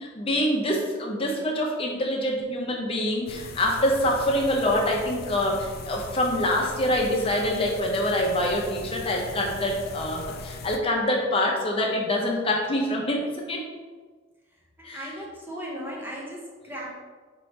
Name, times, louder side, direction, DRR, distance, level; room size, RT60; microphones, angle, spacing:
voice 1, 0.0-13.6 14.8-15.1, left 1 dB, 30° left, -1 dB, 0.7 m, -25 dB
sound 1, 3.3-10.8, left 3 dB, 55° left, 0.3 m, -40 dB
voice 2, 14.8-16.9, equal, 10° right, -3 dB, 0.6 m, -37 dB
4.4 x 2.9 x 3.2 m, 1.4 s
head